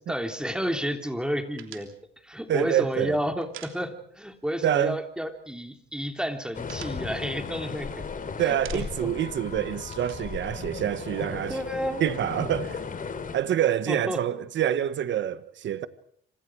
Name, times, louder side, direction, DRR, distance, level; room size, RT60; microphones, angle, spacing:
voice 1, 0.1-1.9 2.2-8.0 8.4-9.1 11.5-12.0 13.9-14.2, equal, 5° right, 3.3 m, -31 dB
sound 1, 1.6-4.4 4.6-4.8 5.1-5.8 6.1-8.1 8.4-9.2 9.5-11.3, right 11 dB, 80° right, 3.2 m, -47 dB
voice 2, 2.5-3.2 4.6-5.0 8.4-11.6 12.0-12.8 13.3-15.9, right 10 dB, 65° right, 1.4 m, -26 dB
sound 2, 6.5-13.4, left 5 dB, 45° left, 4.1 m, -36 dB
28.0 x 26.5 x 4.9 m
cardioid pair, 90°, 20 cm